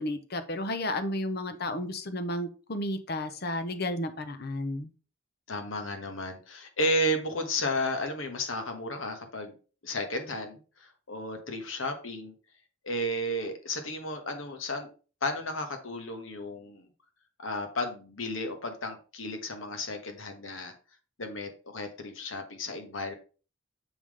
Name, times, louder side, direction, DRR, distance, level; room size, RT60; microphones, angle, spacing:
voice 1, 0.0-4.9, left 1 dB, 50° left, 9 dB, 0.9 m, -32 dB
voice 2, 5.5-9.5 9.8-12.3 12.8-14.9 15.2-16.9 17.4-20.7 21.2-23.1, left 1 dB, 75° left, 6 dB, 1.3 m, -33 dB
7.1 x 3.8 x 4.8 m, 0.36 s
head